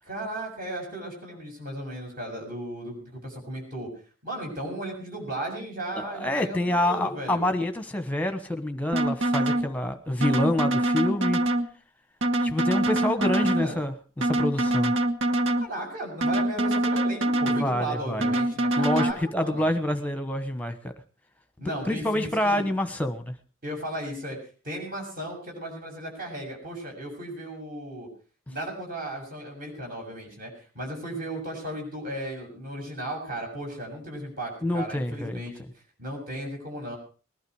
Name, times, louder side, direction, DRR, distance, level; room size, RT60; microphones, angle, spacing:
voice 1, 0.0-3.9 4.2-7.5 12.9-13.8 15.6-19.7 21.6-22.7 23.6-24.4 24.6-28.1 28.5-35.6 36.0-37.0, right 1 dB, 45° right, 1 dB, 7.0 m, -35 dB
voice 2, 5.9-11.4 12.4-14.9 17.6-18.3 18.8-20.9 21.9-23.3 34.6-35.5, left 1 dB, 5° left, 8 dB, 1.2 m, -27 dB
sound 1, 8.9-9.7 10.2-11.7 12.2-13.7 14.2-15.7 16.2-17.7 18.2-19.1, right 1 dB, 70° right, 1.2 m, -24 dB
20.5 x 11.5 x 4.8 m, 0.38 s
head